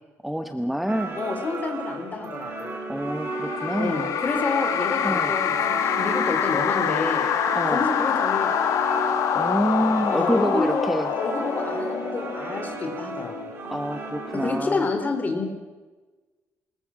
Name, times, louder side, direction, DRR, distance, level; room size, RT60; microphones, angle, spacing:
voice 1, 0.2-1.2 2.9-4.1 5.0-5.3 7.5-7.9 9.3-11.1 13.7-14.9, equal, ahead, 7 dB, 0.8 m, -26 dB
sound 1, 0.9-14.6, right 1 dB, 45° right, 4.0 m, -33 dB
voice 2, 1.1-2.8 3.8-7.3 7.7-8.8 10.1-13.4 14.3-15.5, left 3 dB, 30° left, 6 dB, 3.3 m, -29 dB
sound 2, 3.1-12.8, left 9 dB, 75° left, 1.3 m, -26 dB
24.5 x 21.0 x 6.2 m, 1.3 s
cardioid pair, 140°, 6 cm